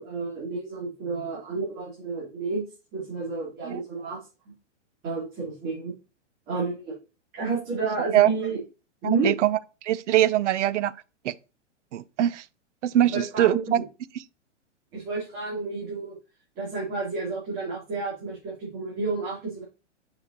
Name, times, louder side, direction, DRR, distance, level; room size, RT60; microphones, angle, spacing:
voice 1, 0.0-2.6 2.9-4.3 5.0-6.0 6.5-7.0 7.3-8.6 9.0-9.3 13.0-13.8 14.9-16.2 16.6-19.6, right 4 dB, 30° right, 3.1 m, -30 dB
voice 2, 9.2-9.6 9.8-10.9 11.2-11.3 11.9-12.4 12.8-13.8, right 12 dB, 70° right, 0.6 m, -22 dB
7.8 x 5.7 x 2.8 m
hypercardioid pair, 140°, 37 cm